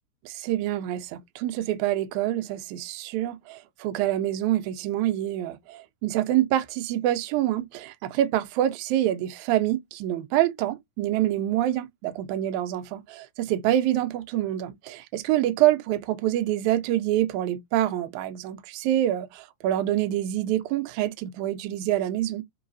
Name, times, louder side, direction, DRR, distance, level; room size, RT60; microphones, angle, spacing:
voice 1, 0.3-22.4, right 13 dB, 75° right, 1.8 m, -26 dB
4.7 x 3.1 x 2.6 m
omnidirectional pair, 3.8 m